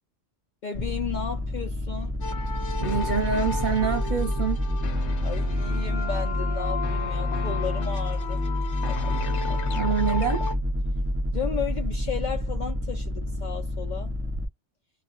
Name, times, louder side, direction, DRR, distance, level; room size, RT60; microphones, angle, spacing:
voice 1, 0.6-2.1 5.2-8.4 11.3-14.2, left 7 dB, 55° left, 0.5 m, -34 dB
sound 1, 0.7-14.4, left 1 dB, 20° right, 0.4 m, -28 dB
sound 2, 2.2-10.5, left 5 dB, 75° left, 1.0 m, -34 dB
voice 2, 2.8-4.6 9.7-10.4, right 6 dB, 45° right, 0.9 m, -26 dB
2.4 x 2.1 x 3.8 m
omnidirectional pair, 1.2 m